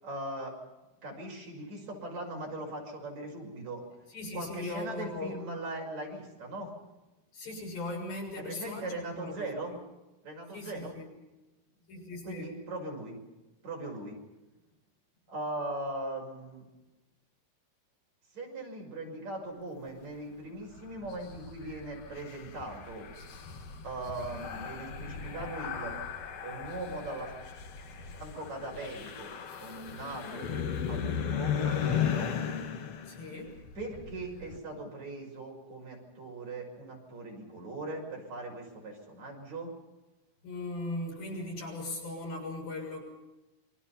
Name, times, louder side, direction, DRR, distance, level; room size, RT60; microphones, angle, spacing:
voice 1, 0.0-0.6 1.0-3.8 4.3-6.7 8.4-9.7 10.2-11.0 12.2-13.2 13.6-14.2 15.3-16.6 18.3-23.1 23.8-26.0 26.4-27.3 28.1-30.5 30.9-32.4 33.8-39.7, right 2 dB, 50° right, 0 dB, 7.1 m, -40 dB
voice 2, 4.1-5.3 7.3-9.8 10.5-11.1 11.9-12.5 33.0-33.6 40.4-43.0, left 2 dB, 90° left, 0 dB, 8.6 m, -39 dB
sound 1, 20.7-34.6, left 7 dB, 50° left, 2.3 m, -36 dB
27.0 x 24.5 x 5.7 m, 1.0 s
omnidirectional pair, 4.0 m